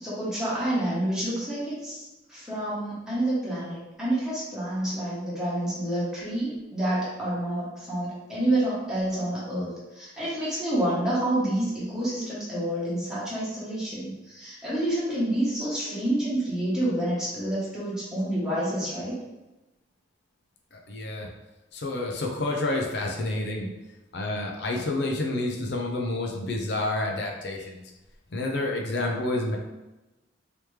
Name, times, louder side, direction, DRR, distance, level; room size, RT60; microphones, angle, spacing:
voice 1, 0.0-2.0 2.3-19.2, right 1 dB, 5° right, -9 dB, 1.1 m, -28 dB
voice 2, 20.7-21.3 21.7-23.7 24.1-27.8 28.3-29.6, left 2 dB, 60° left, 0 dB, 0.5 m, -29 dB
3.3 x 3.0 x 3.1 m, 1.0 s
head